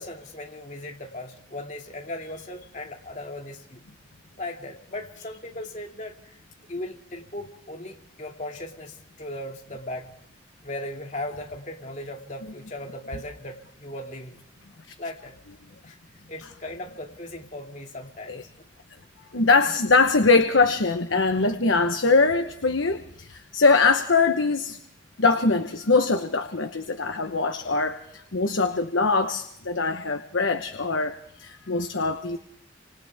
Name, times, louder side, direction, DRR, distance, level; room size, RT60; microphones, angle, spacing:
voice 1, 0.0-3.8 4.4-6.3 6.7-10.2 10.6-14.4 15.0-15.4 15.8-16.0 16.3-18.7, left 1 dB, 40° left, 1 dB, 2.5 m, -37 dB
voice 2, 19.3-24.8 25.2-32.4, left 3 dB, 90° left, 7 dB, 1.1 m, -22 dB
29.5 x 26.0 x 3.6 m, 0.70 s
head